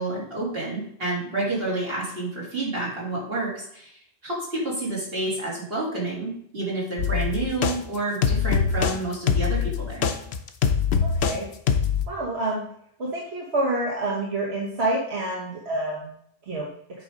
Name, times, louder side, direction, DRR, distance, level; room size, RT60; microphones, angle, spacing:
voice 1, 0.0-10.1, right 2 dB, 70° right, -5 dB, 2.9 m, -29 dB
sound 1, 7.0-7.8 8.2-9.0 9.3-11.4 11.7-12.1, left 7 dB, 85° left, 0.9 m, -23 dB
voice 2, 11.0-11.5 12.1-12.6 13.0-16.1 16.5-16.7, right 2 dB, 90° right, -3 dB, 1.4 m, -27 dB
8.3 x 3.4 x 5.0 m, 0.68 s
omnidirectional pair, 1.0 m